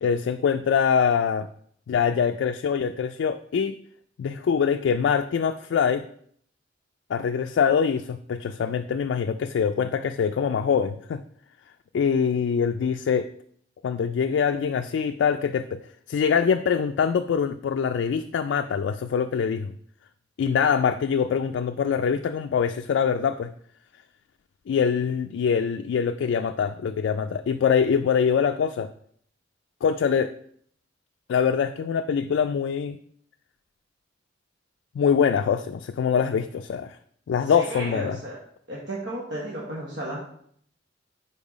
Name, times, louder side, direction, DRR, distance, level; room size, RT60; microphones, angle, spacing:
voice 1, 0.0-1.5 1.9-3.8 4.2-6.1 7.1-11.2 11.9-13.3 13.8-15.8 16.1-19.7 20.4-23.5 24.7-28.9 29.8-30.3 31.3-33.0 35.0-37.0 37.3-38.2, left 7 dB, 80° left, 7 dB, 0.3 m, -24 dB
voice 2, 37.5-38.4 38.7-40.2, right 1 dB, 70° right, -6 dB, 1.2 m, -33 dB
5.5 x 4.3 x 4.9 m, 0.64 s
head